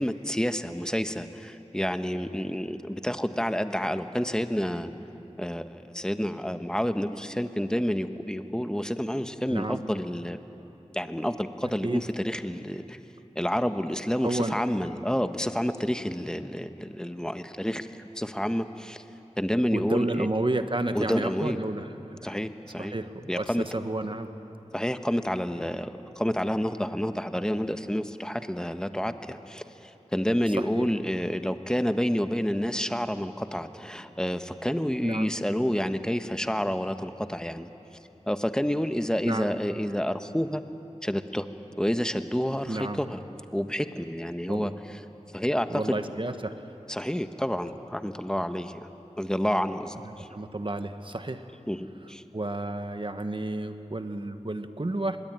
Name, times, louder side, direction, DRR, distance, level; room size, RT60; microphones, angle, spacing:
voice 1, 0.0-4.9 5.4-10.4 10.9-13.0 13.3-17.9 18.2-19.0 19.4-20.3 20.9-21.6 22.2-22.9 23.3-23.6 24.7-29.6 30.1-37.7 38.3-40.6 41.0-41.5 41.8-43.2 43.5-44.7 45.3-46.0 46.9-48.9 49.2-50.3 51.7-52.2, equal, 5° left, 9 dB, 1.3 m, -29 dB
voice 2, 9.5-9.8 11.8-12.0 14.2-14.6 19.7-22.4 22.8-24.3 30.5-30.9 35.0-35.3 39.2-39.5 42.7-43.0 44.5-44.7 45.7-46.5 50.0-51.5 52.3-55.2, right 2 dB, 45° right, 8 dB, 1.5 m, -31 dB
25.5 x 20.5 x 9.1 m, 3.0 s
wide cardioid pair, 40°, 12 cm